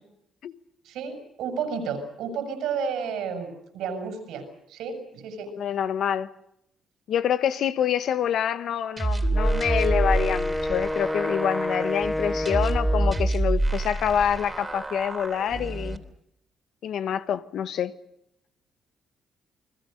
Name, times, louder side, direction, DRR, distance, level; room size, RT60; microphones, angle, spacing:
voice 1, 0.8-5.5, right 6 dB, 85° right, 6.5 m, -32 dB
voice 2, 5.6-6.3 7.1-16.0 16.8-17.9, left 9 dB, 70° left, 1.3 m, -26 dB
sound 1, 9.0-16.0, right 2 dB, 20° right, 3.2 m, -27 dB
Wind instrument woodwind instrument, 9.3-13.4, left 1 dB, 15° left, 2.0 m, -29 dB
29.5 x 21.0 x 6.6 m
cardioid pair, 90°, 0 cm